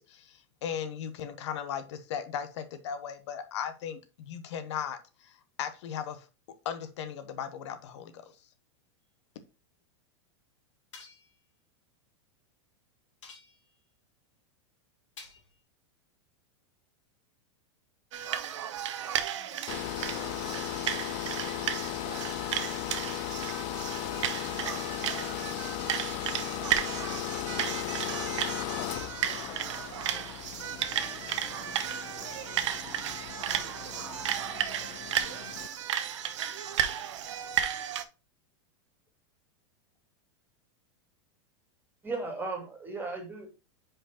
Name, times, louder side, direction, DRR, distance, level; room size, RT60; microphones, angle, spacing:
voice 1, 0.0-6.3 6.6-8.3, left 8 dB, 70° left, 0.9 m, -37 dB
sound 1, 10.9-11.4 13.2-13.8 15.2-15.6, left 4 dB, 85° left, 2.5 m, -50 dB
sound 2, 18.1-38.0, right 10 dB, 80° right, 0.8 m, -34 dB
voice 2, 19.3-22.6 29.4-34.3, left 2 dB, 15° left, 1.7 m, -54 dB
sound 3, 19.7-35.7, left 15 dB, 45° left, 0.5 m, -37 dB
voice 3, 42.0-43.5, right 3 dB, 15° right, 2.2 m, -36 dB
5.0 x 5.0 x 4.2 m
supercardioid pair, 130°, 15 cm